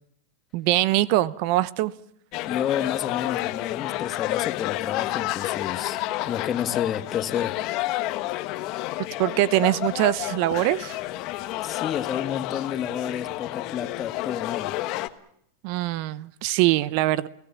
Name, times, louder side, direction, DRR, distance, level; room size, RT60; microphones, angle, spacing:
voice 1, 0.5-1.9 9.2-11.0 15.6-17.3, right 16 dB, 55° right, 0.8 m, -23 dB
sound 1, 2.3-15.1, left 17 dB, 50° left, 1.3 m, -30 dB
voice 2, 2.5-7.6 11.6-14.8, left 9 dB, 30° left, 1.5 m, -30 dB
29.5 x 17.0 x 7.2 m
hypercardioid pair, 110°, 0 cm